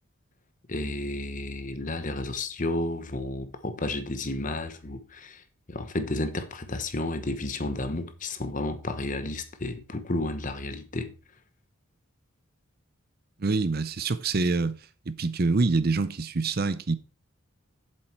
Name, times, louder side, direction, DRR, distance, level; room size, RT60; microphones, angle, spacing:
voice 1, 0.7-5.4 5.7-11.1, left 2 dB, 35° left, 1.0 m, -32 dB
voice 2, 13.4-14.8 15.1-17.0, right 3 dB, 45° right, 0.6 m, -25 dB
7.6 x 7.5 x 4.5 m
head